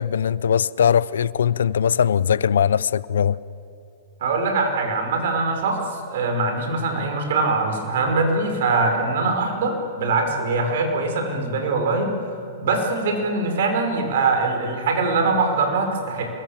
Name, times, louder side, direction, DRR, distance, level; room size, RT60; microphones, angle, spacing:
voice 1, 0.0-3.4, left 8 dB, 85° left, 0.6 m, -20 dB
voice 2, 4.2-12.1 12.6-16.2, right 3 dB, 65° right, 5.7 m, -22 dB
27.0 x 22.0 x 7.5 m
hypercardioid pair, 140°, 0 cm